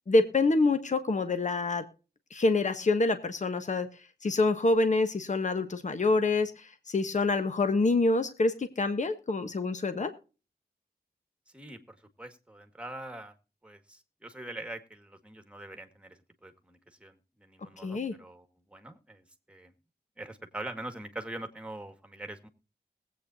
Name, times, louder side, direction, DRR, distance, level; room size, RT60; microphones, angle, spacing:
voice 1, 0.1-1.8 2.3-3.9 4.2-10.1 17.8-18.1, left 3 dB, 45° left, 9 dB, 1.2 m, -26 dB
voice 2, 11.5-13.3 13.6-18.5 18.7-19.7 20.2-22.5, right 1 dB, 5° right, 7 dB, 1.8 m, -43 dB
21.0 x 8.5 x 2.7 m, 0.34 s
wide cardioid pair, 95°, 17 cm